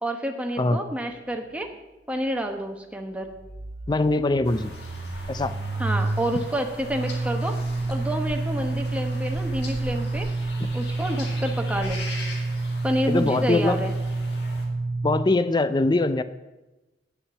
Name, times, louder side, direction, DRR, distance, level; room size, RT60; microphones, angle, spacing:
voice 1, 0.0-1.7 2.1-3.3 5.8-7.6 7.9-10.3 10.7-12.0 12.8-13.9, equal, 5° right, 3 dB, 0.9 m, -29 dB
sound 1, 1.3-1.4 1.6-1.7 3.2-15.2, right 3 dB, 40° right, 0.5 m, -29 dB
voice 2, 3.9-4.7 5.3-5.6 10.6-10.7 13.1-13.8 15.0-16.2, left 2 dB, 25° left, 12 dB, 0.4 m, -22 dB
sound 2, 4.4-14.7, left 2 dB, 65° left, 1.9 m, -41 dB
9.1 x 7.1 x 7.0 m, 1.1 s
head